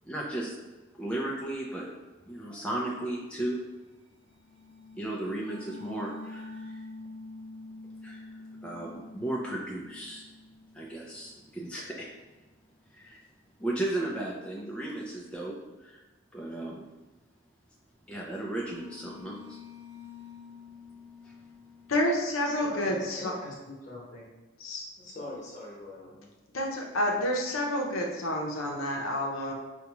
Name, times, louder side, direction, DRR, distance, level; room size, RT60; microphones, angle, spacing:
voice 1, 0.0-0.5 1.0-1.9 2.3-3.6 4.9-6.8 8.0-8.2 8.6-10.2 10.7-12.1 12.9-13.2 13.6-15.5 15.8-16.0 16.3-16.8 18.1-19.6 21.2-21.4, right 1 dB, 5° left, -4 dB, 0.4 m, -35 dB
sound 1, 4.3-11.9 18.5-21.9, left 3 dB, 55° right, 0.8 m, -47 dB
voice 2, 21.9-23.3 24.6-24.9 26.5-29.5, left 1 dB, 80° left, 0 dB, 0.7 m, -29 dB
voice 3, 22.4-24.3 25.0-26.3, left 1 dB, 35° left, -4 dB, 1.0 m, -42 dB
5.0 x 2.3 x 2.9 m, 1.2 s
head